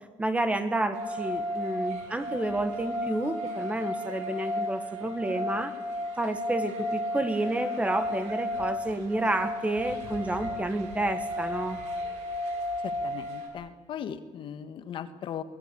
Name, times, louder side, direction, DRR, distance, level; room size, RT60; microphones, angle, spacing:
voice 1, 0.2-5.7 6.2-11.8, right 2 dB, 10° right, 10 dB, 1.5 m, -30 dB
sound 1, 0.9-13.5, left 1 dB, 85° right, 4.9 m, -34 dB
voice 2, 12.8-15.4, left 8 dB, 45° left, 10 dB, 1.4 m, -38 dB
23.5 x 18.5 x 8.5 m, 1.3 s
cardioid pair, 145°, 12 cm